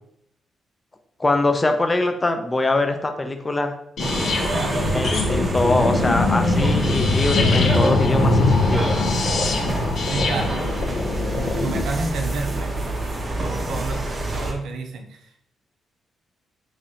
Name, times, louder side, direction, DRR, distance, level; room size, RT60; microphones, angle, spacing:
voice 1, 1.2-3.7 4.9-9.0, left 2 dB, 15° left, 6 dB, 0.4 m, -23 dB
sound 1, 4.0-11.8, left 3 dB, 60° left, 0.6 m, -22 dB
sound 2, 4.0-14.5, right 1 dB, 30° right, 0.6 m, -27 dB
voice 2, 4.4-4.8 10.1-10.7 11.3-12.9 13.4-14.0 14.3-15.4, right 3 dB, 85° right, 3 dB, 0.5 m, -30 dB
3.1 x 2.7 x 3.7 m, 0.74 s
cardioid pair, 145°, 0 cm